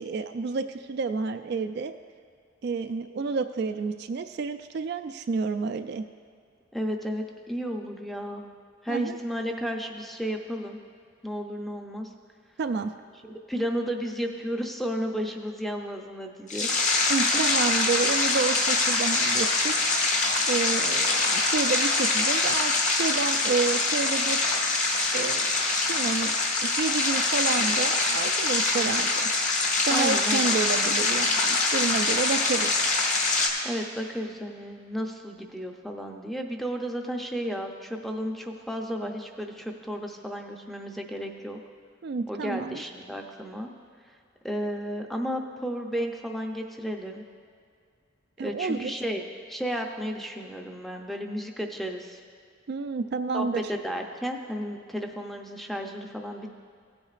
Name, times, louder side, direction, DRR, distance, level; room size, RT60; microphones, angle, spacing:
voice 1, 0.0-1.9 2.6-6.0 8.9-9.2 12.6-12.9 17.1-19.7 20.5-24.4 25.1-25.5 25.9-26.4 26.6-29.3 29.9-32.7 42.0-42.8 48.4-48.9 52.7-53.6, right 4 dB, 55° right, 8 dB, 0.3 m, -29 dB
voice 2, 6.7-8.5 8.8-10.8 11.2-12.1 13.2-16.7 17.3-17.5 29.9-30.4 33.6-41.6 42.3-43.7 44.4-47.2 48.4-49.2 49.5-52.2 53.3-56.5, equal, ahead, 2 dB, 0.6 m, -33 dB
sound 1, 16.5-33.5, left 3 dB, 40° left, 1.1 m, -24 dB
16.0 x 8.6 x 2.5 m, 2.2 s
head